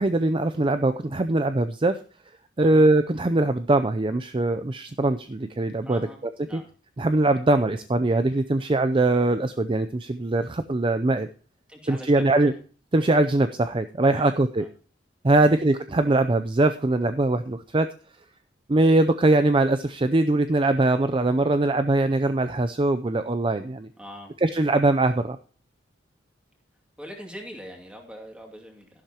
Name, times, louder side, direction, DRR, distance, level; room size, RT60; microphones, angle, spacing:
voice 1, 0.0-2.0 2.6-6.0 6.5-6.6 7.0-11.3 11.9-12.5 12.9-14.6 15.2-17.9 18.7-23.9 24.4-25.4, right 2 dB, 25° right, 10 dB, 0.5 m, -22 dB
voice 2, 5.8-6.2 6.5-6.7 11.7-12.6 14.1-14.7 15.3-15.6 24.0-24.3 27.0-28.9, equal, 5° right, 1 dB, 2.4 m, -42 dB
12.0 x 11.5 x 2.9 m, 0.40 s
head